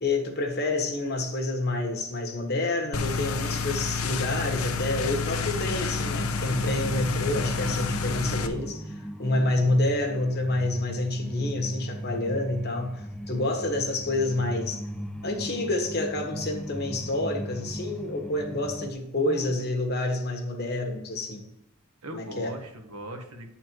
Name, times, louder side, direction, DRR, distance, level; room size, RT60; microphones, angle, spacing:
voice 1, 0.0-8.9 9.2-14.8 15.2-21.5 22.1-22.5, left 2 dB, 50° left, 3 dB, 1.4 m, -28 dB
sound 1, 2.9-8.5, left 4 dB, 85° left, 0.7 m, -29 dB
sound 2, 5.4-18.9, equal, ahead, 0.5 m, -38 dB
voice 2, 19.2-19.7 22.0-23.5, right 1 dB, 85° right, 4 dB, 1.3 m, -40 dB
9.1 x 4.3 x 4.6 m, 0.85 s
head